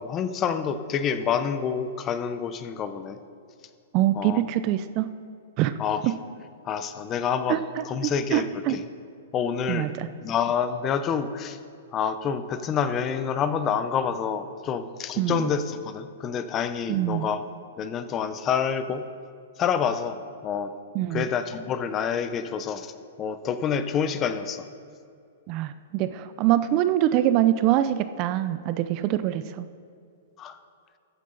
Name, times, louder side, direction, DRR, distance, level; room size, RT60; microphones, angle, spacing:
voice 1, 0.0-3.2 4.1-4.4 5.8-6.0 6.6-8.8 9.3-9.9 10.2-11.6 11.9-17.4 17.8-19.0 19.6-20.7 21.1-22.9 23.2-24.7 30.4-30.6, left 7 dB, 20° left, 11 dB, 0.5 m, -28 dB
voice 2, 3.9-5.1 5.6-5.7 6.0-6.1 7.5-8.8 9.7-10.1 15.2-15.5 16.9-17.3 20.9-21.3 25.5-29.7, right 13 dB, 30° right, 13 dB, 0.3 m, -24 dB
14.0 x 9.4 x 3.8 m, 2.4 s
hypercardioid pair, 165°, 0 cm